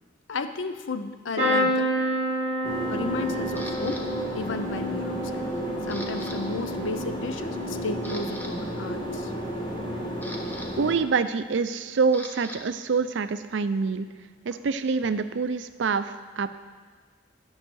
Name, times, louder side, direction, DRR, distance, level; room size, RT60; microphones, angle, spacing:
voice 1, 0.3-1.9 2.9-4.1 4.3-5.4 5.8-9.3, left 3 dB, 80° left, 9 dB, 0.6 m, -33 dB
sound 1, 1.4-9.2 9.6-10.2 11.4-11.6 11.9-12.0, equal, 25° right, 2.3 m, -30 dB
sound 2, 2.6-11.0, equal, 25° left, 1.4 m, -33 dB
Camera, 3.6-4.0 4.6-5.0 5.3-6.4 6.6-6.8 7.4-7.5 7.9-8.5 9.7-12.6 12.9-15.5, left 1 dB, 10° left, 0.7 m, -43 dB
voice 2, 10.8-14.1 14.5-16.5, right 5 dB, 70° right, 12 dB, 0.5 m, -26 dB
10.5 x 5.5 x 6.2 m, 1.5 s
head